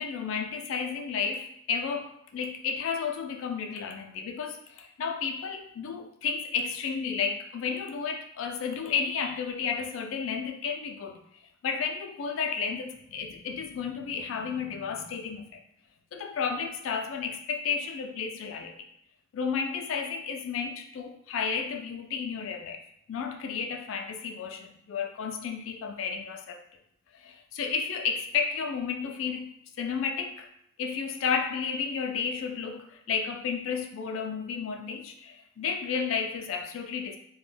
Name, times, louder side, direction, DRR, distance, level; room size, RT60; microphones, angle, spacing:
voice 1, 0.0-15.6 16.1-18.9 19.3-22.8 23.1-26.6 27.1-29.5 29.8-30.5 30.8-37.2, left 6 dB, 65° left, 5 dB, 0.3 m, -32 dB
2.2 x 2.1 x 3.2 m, 0.73 s
head